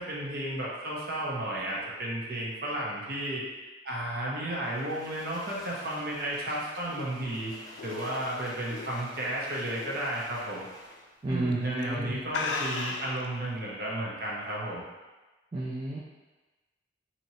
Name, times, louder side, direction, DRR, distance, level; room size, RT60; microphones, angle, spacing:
voice 1, 0.0-3.4 3.8-7.5 7.8-10.7 11.3-14.8, right 1 dB, 55° right, -5 dB, 0.9 m, -33 dB
sound 1, 4.6-11.1, left 1 dB, 20° left, 0.6 m, -49 dB
sound 2, 6.2-9.3 9.7-10.0 10.4-10.5 11.3-11.5 11.8-11.9 12.3-13.2, left 4 dB, 85° left, 0.4 m, -35 dB
voice 2, 11.2-12.2 15.5-16.0, right 2 dB, 30° right, -6 dB, 0.4 m, -31 dB
4.4 x 2.9 x 2.8 m, 1.2 s
head